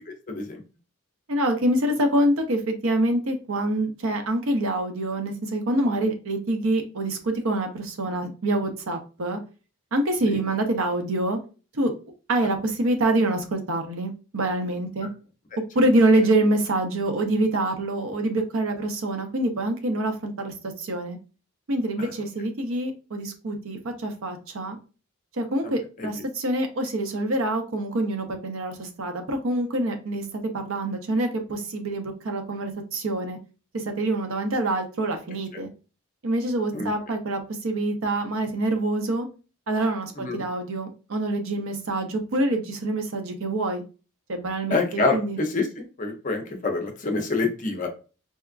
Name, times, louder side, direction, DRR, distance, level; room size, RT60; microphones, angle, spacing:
voice 1, 0.3-0.6 10.2-10.4 22.0-22.1 26.0-26.1 36.7-36.9 40.2-40.5 44.7-47.9, left 3 dB, 35° left, 4 dB, 0.5 m, -27 dB
voice 2, 1.3-9.4 9.9-11.4 11.7-11.9 12.3-15.1 15.7-21.2 21.7-24.8 25.3-33.4 33.7-35.7 36.2-39.3 39.7-43.8 44.3-45.4, right 1 dB, 70° right, 5 dB, 0.7 m, -26 dB
4.2 x 2.3 x 2.4 m, 0.34 s
head